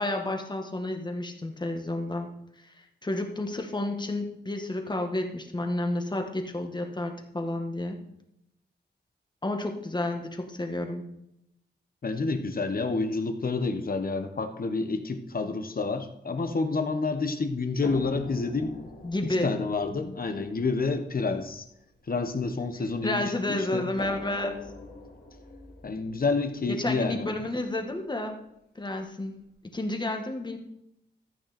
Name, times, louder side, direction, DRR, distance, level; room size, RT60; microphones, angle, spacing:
voice 1, 0.0-2.3 2.6-8.0 9.4-11.0 19.0-19.5 23.0-24.6 26.7-28.4 28.8-30.6, left 2 dB, 25° left, 3 dB, 1.8 m, -31 dB
voice 2, 12.0-18.7 19.4-21.7 22.1-23.8 25.8-27.3, left 3 dB, 50° left, 7 dB, 1.3 m, -29 dB
sound 1, 17.8-23.0 24.0-27.9 28.9-29.0 29.4-29.5, left 3 dB, 75° left, 2.9 m, -45 dB
13.5 x 9.1 x 4.4 m, 0.80 s
wide cardioid pair, 105°, 19 cm